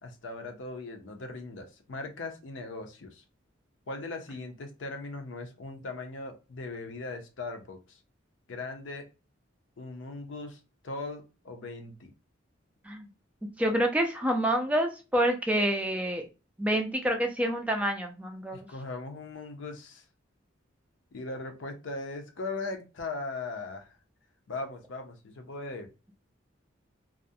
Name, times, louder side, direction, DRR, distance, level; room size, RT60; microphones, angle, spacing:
voice 1, 0.0-3.2 3.9-8.0 8.5-9.1 9.8-12.1 18.5-20.0 21.1-24.0 24.5-25.9, left 3 dB, 70° left, 5 dB, 0.5 m, -39 dB
voice 2, 13.6-16.3 16.6-18.7, right 1 dB, 5° right, 4 dB, 0.3 m, -27 dB
2.4 x 2.0 x 2.6 m, 0.30 s
head